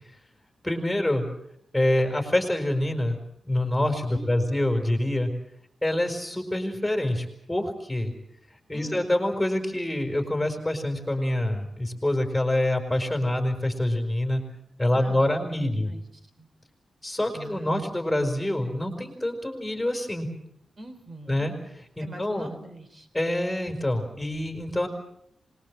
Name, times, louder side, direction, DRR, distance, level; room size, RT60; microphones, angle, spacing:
voice 1, 0.6-1.3 1.7-3.2 3.4-5.3 5.8-8.1 8.7-14.4 14.8-15.9 17.0-20.3 21.3-21.5 22.0-22.5 23.1-24.9, left 1 dB, 5° left, 4 dB, 5.3 m, -26 dB
voice 2, 4.1-4.6 8.7-9.1 14.9-16.1 16.4-16.5 17.3-17.9 20.8-21.5 22.0-23.1, right 1 dB, 35° right, 7 dB, 4.3 m, -44 dB
25.5 x 21.0 x 7.7 m, 0.74 s
wide cardioid pair, 135°, 0 cm